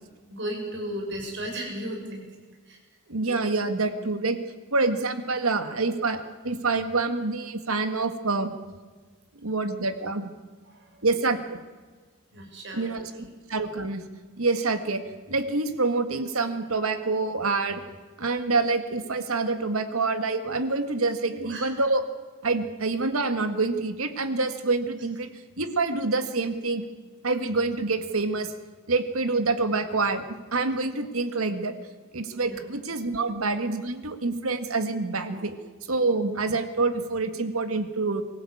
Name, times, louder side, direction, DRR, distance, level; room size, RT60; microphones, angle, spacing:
voice 1, 0.3-2.2 2.7-2.8 3.2-3.4 10.7-11.1 12.3-12.9 21.3-21.7 32.4-32.6 35.3-35.5, equal, 55° right, 0 dB, 7.1 m, -35 dB
voice 2, 3.1-4.4 4.7-8.5 9.4-10.3 11.0-11.6 12.7-14.0 14.4-15.0 15.3-17.8 18.2-22.0 22.4-25.3 25.6-26.8 27.2-28.5 28.9-30.2 30.5-31.7 32.1-35.5 35.9-38.2, right 3 dB, 80° right, 8 dB, 1.9 m, -26 dB
24.0 x 15.5 x 8.7 m, 1.4 s
head